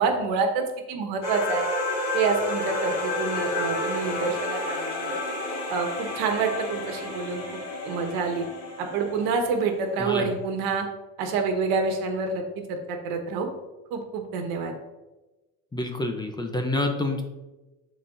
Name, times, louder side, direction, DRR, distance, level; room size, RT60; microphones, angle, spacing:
voice 1, 0.0-1.6 2.1-5.2 5.7-8.4 8.8-10.8 11.2-12.4 12.7-13.5 13.9-14.7, right 4 dB, 85° right, 4 dB, 1.3 m, -27 dB
sound 1, 1.2-9.8, left 2 dB, 45° left, 2.3 m, -30 dB
voice 2, 10.0-10.3 15.7-17.2, left 2 dB, 10° left, 4 dB, 0.6 m, -27 dB
11.5 x 4.1 x 2.5 m, 1.1 s
cardioid pair, 140°, 36 cm